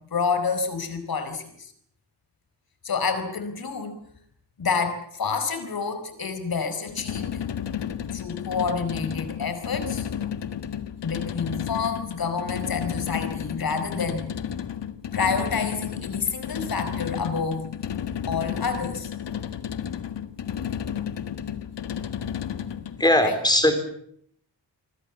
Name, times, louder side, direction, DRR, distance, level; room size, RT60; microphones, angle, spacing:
voice 1, 0.0-1.7 2.8-4.0 4.6-7.5 8.1-10.1 11.0-14.3 15.1-17.7 18.3-19.1 23.2-23.4, left 5 dB, 55° left, 9 dB, 4.7 m, -28 dB
sound 1, 6.9-23.0, left 9 dB, 80° left, 1.7 m, -32 dB
voice 2, 23.0-23.7, left 1 dB, 10° left, 8 dB, 4.2 m, -19 dB
26.5 x 22.5 x 7.2 m, 0.66 s
wide cardioid pair, 180°, 42 cm